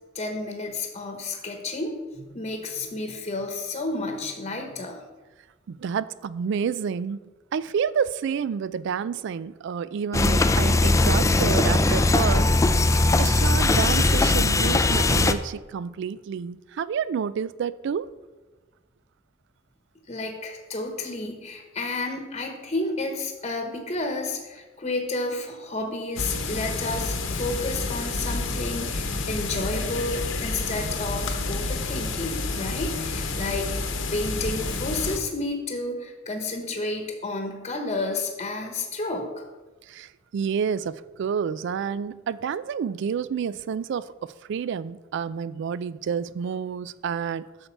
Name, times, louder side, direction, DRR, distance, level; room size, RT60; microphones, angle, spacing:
voice 1, 0.1-5.0 20.1-33.8 34.1-39.4, left 2 dB, 35° left, 1.1 m, -31 dB
voice 2, 5.7-7.2 7.5-12.4 13.2-18.1 39.9-47.4, right 7 dB, 65° right, 0.3 m, -29 dB
sound 1, 10.1-15.3, left 2 dB, 15° left, 0.3 m, -20 dB
sound 2, 26.2-35.2, left 3 dB, 70° left, 1.0 m, -29 dB
8.4 x 6.5 x 4.5 m
head